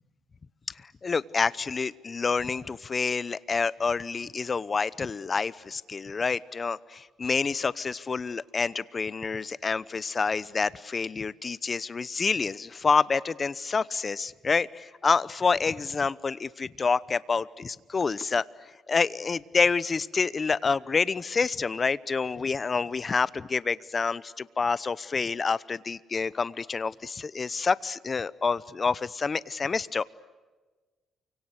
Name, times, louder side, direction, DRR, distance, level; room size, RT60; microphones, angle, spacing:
voice 1, 1.0-18.4 18.9-30.0, left 5 dB, 35° left, 19 dB, 0.8 m, -28 dB
29.0 x 25.0 x 8.2 m, 1.3 s
cardioid pair, 90°, 0 cm